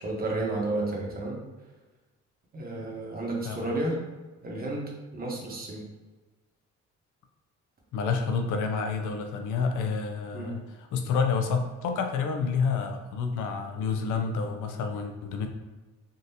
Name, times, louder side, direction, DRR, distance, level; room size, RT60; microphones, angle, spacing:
voice 1, 0.0-1.4 2.5-4.0 4.4-5.8 10.3-10.5, right 2 dB, 30° right, -2 dB, 1.0 m, -32 dB
voice 2, 7.9-10.6 10.9-15.5, left 5 dB, 80° left, 5 dB, 0.6 m, -29 dB
3.7 x 2.5 x 2.7 m, 1.2 s
cardioid pair, 90°, 30 cm